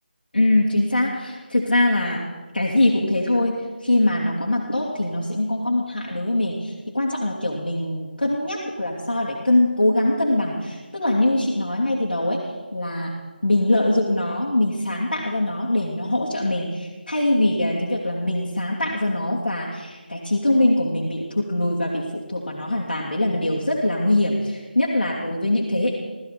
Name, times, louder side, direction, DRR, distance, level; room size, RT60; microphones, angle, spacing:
voice 1, 0.3-2.3 2.5-13.1 13.4-25.9, left 1 dB, 70° left, -4 dB, 2.7 m, -22 dB
17.5 x 14.0 x 4.2 m, 1.3 s
figure-of-eight pair, 160°, 5 cm